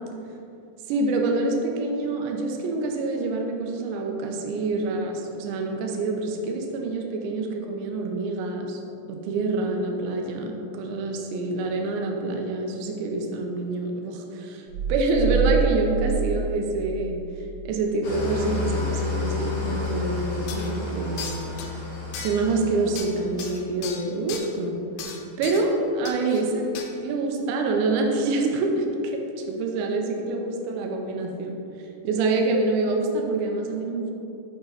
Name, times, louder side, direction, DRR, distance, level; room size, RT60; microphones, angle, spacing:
voice 1, 0.9-8.8 9.1-14.6 14.9-17.2 17.6-21.4 22.2-24.8 25.4-26.7 27.0-29.2 29.5-31.6 32.0-34.1, right 3 dB, 80° right, 2 dB, 2.9 m, -26 dB
sound 1, 14.7-17.7, right 6 dB, 50° left, 2.6 m, -27 dB
Engine starting / Idling, 18.0-23.4, left 4 dB, 70° left, 1.2 m, -31 dB
sound 2, 19.9-20.0 20.5-20.7 21.2-21.7 22.1-22.6 23.0-24.5 25.0-25.7 26.1-26.4 26.7-26.9, left 6 dB, 85° left, 2.4 m, -37 dB
8.1 x 5.4 x 4.0 m, 2.8 s
omnidirectional pair, 5.5 m